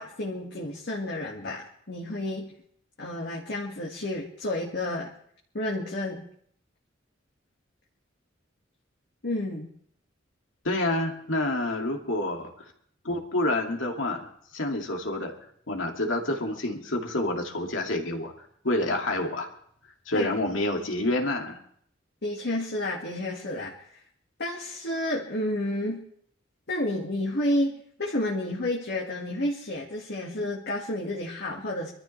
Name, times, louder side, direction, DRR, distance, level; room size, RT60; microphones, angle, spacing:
voice 1, 0.0-2.5 3.0-5.1 5.5-6.2 9.2-9.7 20.1-20.3 22.2-24.0 24.4-26.0 26.7-31.9, left 1 dB, 60° left, -2 dB, 1.9 m, -30 dB
voice 2, 10.6-12.5 13.0-15.3 15.7-18.3 18.6-19.5 20.1-21.6, left 1 dB, 80° left, 2 dB, 2.3 m, -28 dB
25.0 x 13.5 x 3.3 m, 0.64 s
head